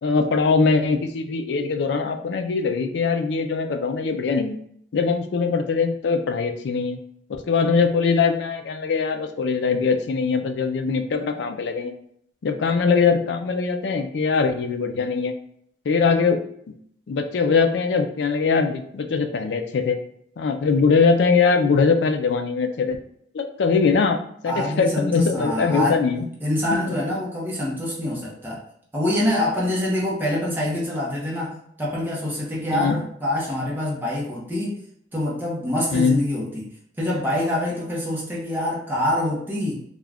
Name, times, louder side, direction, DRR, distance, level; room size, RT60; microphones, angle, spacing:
voice 1, 0.0-4.6 4.9-7.0 7.5-11.9 12.4-15.3 15.9-16.4 17.1-20.0 20.4-23.0 23.3-26.3 26.7-27.0 32.7-33.0 35.9-36.2, left 5 dB, 65° left, 6 dB, 0.3 m, -21 dB
voice 2, 24.5-26.0 26.4-28.6 28.9-34.8 35.1-36.7 37.0-39.8, left 1 dB, 10° right, -5 dB, 0.6 m, -25 dB
2.4 x 2.2 x 3.3 m, 0.68 s
head